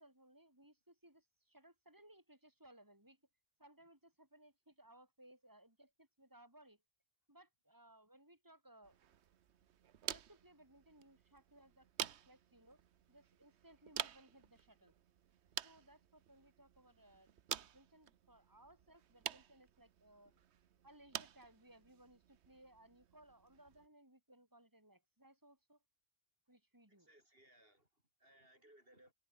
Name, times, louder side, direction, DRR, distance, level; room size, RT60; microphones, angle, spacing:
voice 1, 0.0-3.2 3.6-6.8 7.3-9.0 10.1-12.8 13.1-14.9 15.6-17.3 17.6-20.4 20.8-25.8 26.5-27.1, right 1 dB, 15° right, 6.2 m, -64 dB
sound 1, 8.8-23.9, right 9 dB, 60° right, 1.1 m, -50 dB
voice 2, 26.9-29.1, right 1 dB, 45° right, 8.2 m, -67 dB
omnidirectional pair, 1.3 m